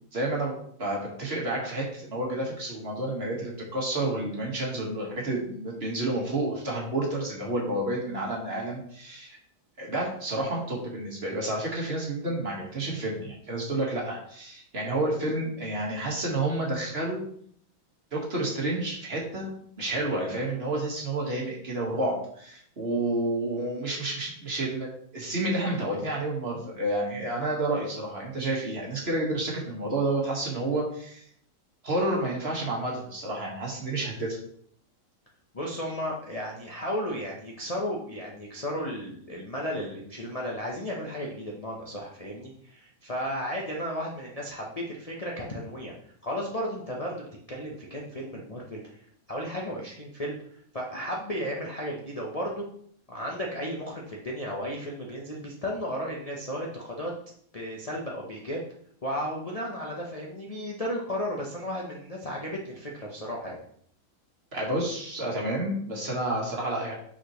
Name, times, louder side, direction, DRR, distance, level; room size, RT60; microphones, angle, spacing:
voice 1, 0.1-9.4 9.8-17.2 18.1-19.5 19.8-24.9 25.1-31.2 31.8-34.4 64.5-66.9, right 2 dB, 35° right, -2 dB, 1.5 m, -30 dB
voice 2, 35.5-45.9 46.2-49.0 49.3-52.6 53.1-57.1 57.5-58.6 59.0-63.6, equal, 55° left, -3 dB, 0.4 m, -34 dB
6.1 x 5.8 x 3.0 m, 0.62 s
omnidirectional pair, 2.1 m